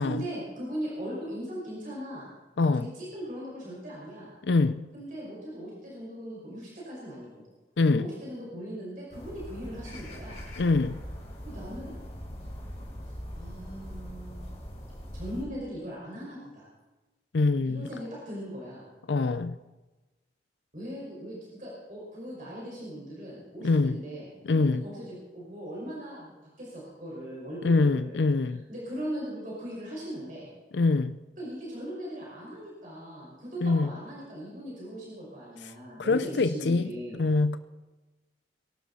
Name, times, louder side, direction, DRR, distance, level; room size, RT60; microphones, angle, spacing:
voice 1, 0.0-2.3 2.7-4.3 4.9-7.4 7.9-10.4 11.4-12.0 13.3-14.6 15.1-16.7 17.7-18.8 20.7-28.2 28.7-30.5 31.4-37.2, equal, 45° right, 5.4 m, -39 dB
voice 2, 4.4-4.8 7.8-8.1 10.6-11.0 17.3-17.9 19.1-19.6 23.6-24.0 24.4-24.8 27.6-28.6 30.7-31.1 33.6-33.9 36.0-36.9 37.2-37.6, left 3 dB, 85° left, 0.5 m, -24 dB
sound 1, 9.1-15.4, equal, 35° left, 4.4 m, -41 dB
23.0 x 12.0 x 4.2 m
head